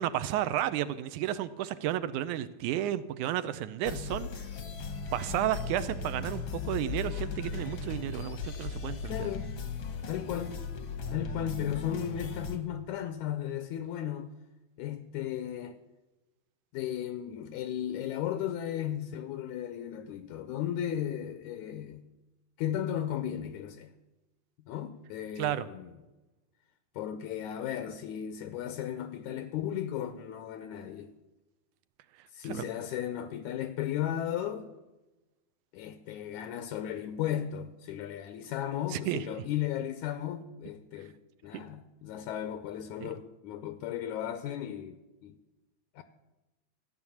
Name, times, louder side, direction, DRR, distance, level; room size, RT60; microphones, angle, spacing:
voice 1, 0.0-4.3 5.1-9.1 25.4-25.7 32.4-32.7 38.9-39.3 41.5-41.6 43.0-43.2, right 12 dB, 80° right, 2.0 m, -32 dB
sound 1, 3.8-12.6, left 4 dB, 60° left, 1.3 m, -37 dB
voice 2, 9.0-9.5 10.1-10.6 11.1-14.3 14.8-15.8 16.7-22.1 22.6-23.9 24.7-25.9 27.0-31.1 32.3-34.7 35.7-41.2 41.4-45.4 46.0-46.1, left 10 dB, 80° left, 1.9 m, -35 dB
14.0 x 9.6 x 7.1 m
omnidirectional pair, 3.7 m